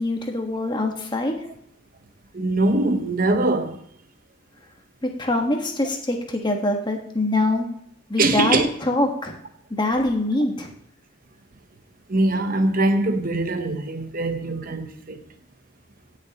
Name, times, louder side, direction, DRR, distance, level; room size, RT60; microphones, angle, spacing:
voice 1, 0.0-1.3 5.0-7.7 8.1-9.4 9.8-10.7, left 2 dB, 20° left, 1.4 m, -24 dB
voice 2, 2.3-3.8 8.2-8.7 12.1-15.2, right 2 dB, 40° right, 0.9 m, -22 dB
17.5 x 6.5 x 2.9 m
head